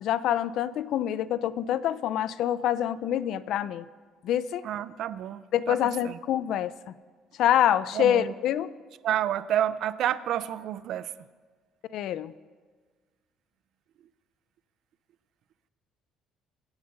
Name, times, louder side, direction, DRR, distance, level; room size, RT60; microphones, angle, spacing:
voice 1, 0.0-3.8 4.2-4.6 5.5-6.7 7.4-8.7 11.9-12.3, left 11 dB, 55° left, 16 dB, 0.5 m, -26 dB
voice 2, 4.6-5.8 6.0-6.2 7.9-8.3 9.0-11.1, right 11 dB, 50° right, 16 dB, 0.5 m, -29 dB
26.5 x 8.9 x 5.4 m, 1.5 s
cardioid pair, 170°, 0 cm